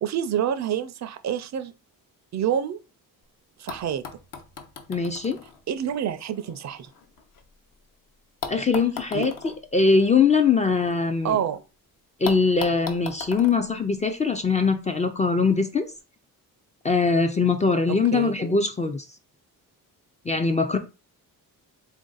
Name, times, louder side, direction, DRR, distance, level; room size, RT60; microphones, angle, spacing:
voice 1, 0.0-1.7 2.3-2.8 3.6-4.0 5.7-6.9 9.1-9.3 11.2-11.6 17.9-18.3, right 9 dB, 50° right, 0.4 m, -27 dB
sound 1, 3.2-3.3 3.7-7.8 8.4-11.4 11.6-11.7 12.2-14.6 15.6-15.7, left 6 dB, 60° left, 0.8 m, -39 dB
voice 2, 4.9-5.4 8.5-11.4 12.2-15.9 16.8-19.0 20.3-20.8, left 4 dB, 20° left, 0.3 m, -22 dB
3.4 x 2.6 x 3.8 m
cardioid pair, 110°, 37 cm